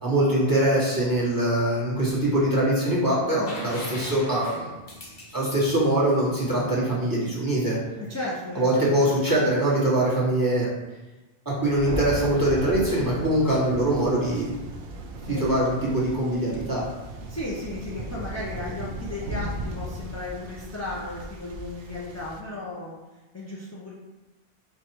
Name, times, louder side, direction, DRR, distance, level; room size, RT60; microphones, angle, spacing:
voice 1, 0.0-4.7 5.3-7.8 8.5-10.7 11.4-14.5 15.3-16.8, right 1 dB, 20° right, -8 dB, 1.4 m, -23 dB
voice 2, 3.4-3.7 8.0-9.0 15.1-15.5 17.3-23.0 23.3-23.9, left 2 dB, 20° left, -7 dB, 0.5 m, -35 dB
sound 1, 3.5-7.2 9.0-9.1, left 1 dB, 50° left, 1.0 m, -41 dB
Thunder, 11.6-22.4, right 1 dB, 65° right, 0.7 m, -36 dB
4.6 x 2.4 x 4.5 m, 1.1 s
omnidirectional pair, 1.1 m